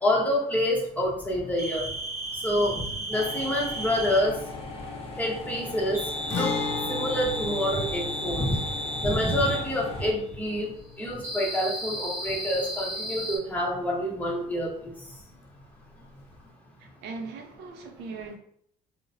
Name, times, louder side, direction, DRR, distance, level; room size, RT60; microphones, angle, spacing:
voice 1, 0.0-1.9 2.4-2.8 3.1-4.4 5.2-6.5 6.9-8.6 9.0-10.7 11.0-14.9, left 1 dB, 10° left, -3 dB, 0.9 m, -27 dB
sound 1, 1.6-4.3 5.9-9.7 11.2-13.4, equal, 20° right, 1.0 m, -34 dB
sound 2, 3.1-10.1, left 3 dB, 35° left, 0.6 m, -39 dB
Guitar, 6.3-13.9 14.2-14.3 16.3-16.4, left 4 dB, 90° left, 0.6 m, -37 dB
voice 2, 16.8-18.4, right 4 dB, 85° right, 3 dB, 0.6 m, -39 dB
3.0 x 2.0 x 2.7 m, 0.66 s
cardioid pair, 110°, 17 cm